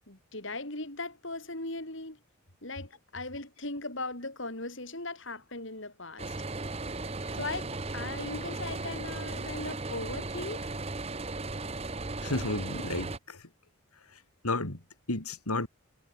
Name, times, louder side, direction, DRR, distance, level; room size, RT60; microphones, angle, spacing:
voice 1, 0.1-2.2 2.6-6.4 7.3-10.7, left 2 dB, 55° left, 4.7 m, -38 dB
sound 1, 6.2-13.2, right 3 dB, 30° right, 1.1 m, -36 dB
voice 2, 12.2-13.4 14.4-14.8 15.1-15.7, left 2 dB, 90° left, 4.0 m, -32 dB
head